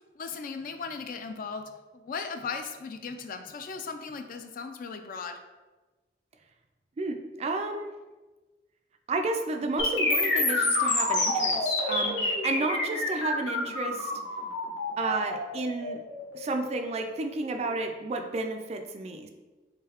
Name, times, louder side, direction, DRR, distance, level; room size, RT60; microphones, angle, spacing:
voice 1, 0.2-1.7 2.0-5.4 12.2-12.4, left 5 dB, 50° left, 8 dB, 0.3 m, -37 dB
voice 2, 7.0-8.0 9.1-14.1 15.0-16.0 16.3-19.3, right 2 dB, 35° right, 6 dB, 0.3 m, -32 dB
sound 1, 9.8-17.7, left 2 dB, 80° left, 1.1 m, -28 dB
3.7 x 3.4 x 2.9 m, 1.2 s
head